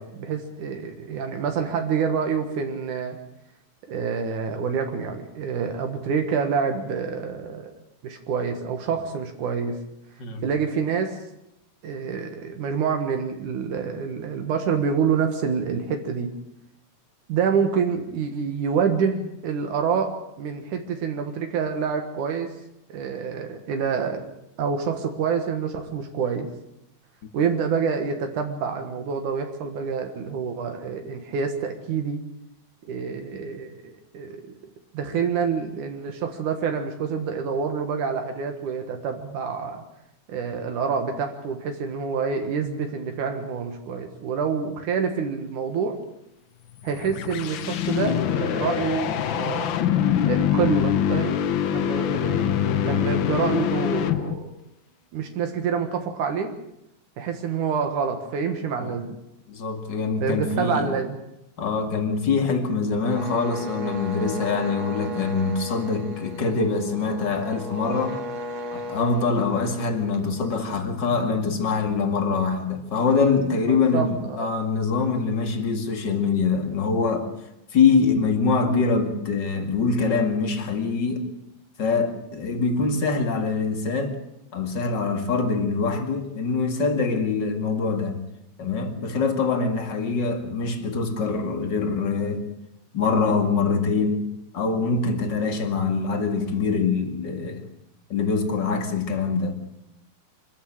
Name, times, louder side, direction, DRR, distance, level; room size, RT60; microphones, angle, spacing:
voice 1, 0.0-3.2 3.9-7.7 8.0-9.8 10.4-11.2 11.8-16.3 17.3-19.2 19.4-20.1 20.4-22.5 22.9-24.3 24.6-26.5 27.3-32.2 32.8-34.5 34.9-39.8 40.3-46.0 46.8-49.8 50.3-51.4 51.7-52.5 52.8-54.6 55.1-56.5 57.2-59.2 60.2-61.2 73.7-74.5, right 6 dB, 80° right, 3.1 m, -27 dB
sound 1, 46.7-54.5, left 9 dB, 80° left, 1.0 m, -24 dB
voice 2, 59.5-60.9 61.6-68.2 68.7-77.3 77.7-81.3 81.8-84.2 84.5-88.2 88.6-92.4 92.9-94.2 94.5-97.6 98.1-99.6, left 4 dB, 40° left, 2.6 m, -24 dB
sound 2, 63.1-70.8, left 1 dB, 60° right, 3.6 m, -36 dB
25.0 x 14.0 x 8.8 m
omnidirectional pair, 3.5 m